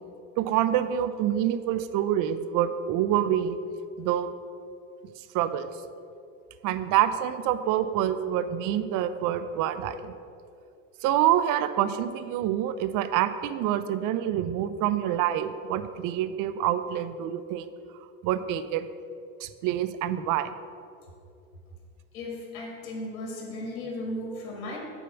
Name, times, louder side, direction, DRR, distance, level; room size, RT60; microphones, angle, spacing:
voice 1, 0.4-3.6 4.0-4.3 5.3-5.7 6.6-10.1 11.0-17.7 18.2-18.9 19.4-20.5, right 11 dB, 50° right, 11 dB, 0.6 m, -26 dB
voice 2, 22.1-24.8, left 1 dB, 85° left, -1 dB, 1.9 m, -35 dB
7.1 x 4.6 x 6.8 m, 2.5 s
supercardioid pair, 95°, 42 cm